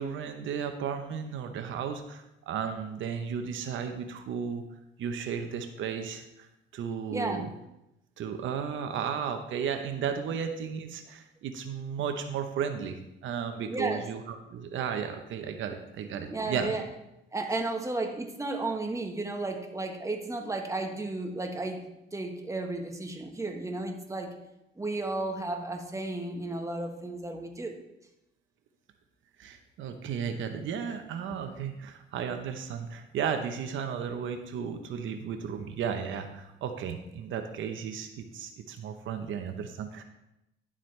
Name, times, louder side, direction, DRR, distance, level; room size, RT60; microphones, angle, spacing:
voice 1, 0.0-4.6 5.0-7.5 8.2-14.2 14.5-16.7 29.4-40.0, right 7 dB, 75° right, 6 dB, 0.9 m, -34 dB
voice 2, 7.1-7.4 13.7-14.1 16.3-16.8 17.3-24.3 24.8-27.8, right 2 dB, 15° right, 3 dB, 1.3 m, -33 dB
11.0 x 7.5 x 3.3 m, 0.88 s
cardioid pair, 90°, 20 cm